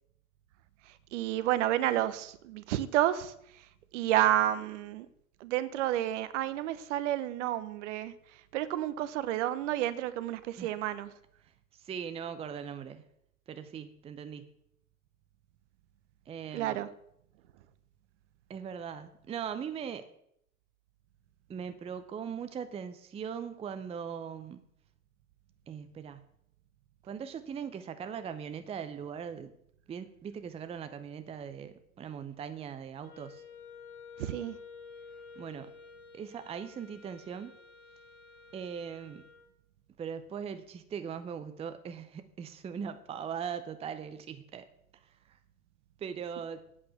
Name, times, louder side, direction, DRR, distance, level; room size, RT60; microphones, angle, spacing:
voice 1, 1.1-3.3 3.9-5.1 5.4-8.1 8.5-11.1 16.5-16.9 34.2-34.6, right 13 dB, 55° right, 14 dB, 1.0 m, -30 dB
voice 2, 11.7-13.1 13.5-14.5 16.3-16.9 18.5-20.1 21.5-24.7 25.7-26.2 27.0-29.6 29.9-33.4 35.4-35.7 36.1-37.5 38.5-39.3 40.0-44.7 45.3-45.4 46.0-46.6, right 7 dB, 15° right, 11 dB, 0.6 m, -40 dB
Wind instrument woodwind instrument, 33.0-39.5, left 5 dB, 50° left, 4.5 m, -51 dB
8.7 x 7.3 x 7.2 m, 0.72 s
hypercardioid pair, 100°, 43 cm